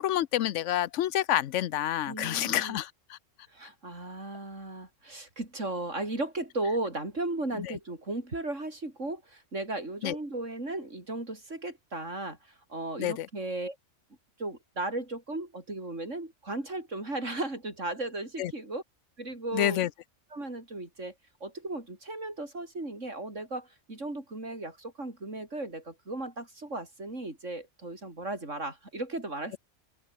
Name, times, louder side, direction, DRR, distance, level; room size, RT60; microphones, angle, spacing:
voice 1, 0.0-3.2 7.6-7.8 10.0-10.2 13.0-13.3 18.4-18.5 19.5-19.9, left 12 dB, 80° left, 1.0 m, -28 dB
voice 2, 2.1-2.8 3.5-13.8 14.4-18.8 19.2-19.8 20.3-21.1 21.4-29.6, right 2 dB, 85° right, 5.9 m, -36 dB
open air
omnidirectional pair, 1.3 m